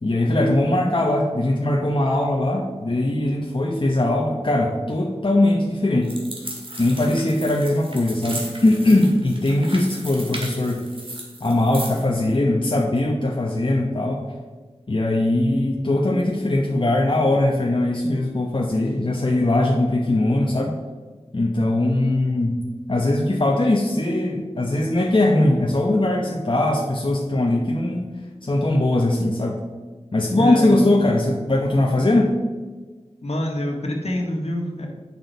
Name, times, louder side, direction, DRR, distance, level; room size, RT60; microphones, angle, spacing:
voice 1, 0.0-6.2 6.8-10.8 11.4-14.2 14.9-20.7 21.3-22.6 22.9-28.1 28.4-29.6 30.1-32.3, left 1 dB, 45° left, -1 dB, 1.0 m, -20 dB
sound 1, 6.0-12.1, right 1 dB, 50° right, 1.9 m, -36 dB
voice 2, 30.3-30.7 33.2-34.9, left 1 dB, 65° left, 1 dB, 1.6 m, -26 dB
8.7 x 6.3 x 4.0 m, 1.3 s
wide cardioid pair, 45°, 11 cm